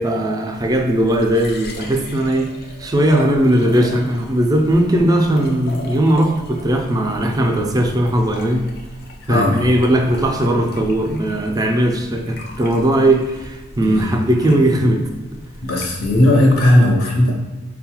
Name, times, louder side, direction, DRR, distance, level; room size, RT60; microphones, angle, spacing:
voice 1, 0.0-2.5 2.8-8.7 9.3-15.0, right 1 dB, 20° right, 3 dB, 0.3 m, -18 dB
sound 1, 0.5-16.7, left 1 dB, 50° left, 0.4 m, -37 dB
voice 2, 9.3-9.6 13.8-14.2 15.6-17.3, left 1 dB, 75° left, -1 dB, 0.7 m, -16 dB
4.0 x 2.2 x 2.9 m, 1.2 s
head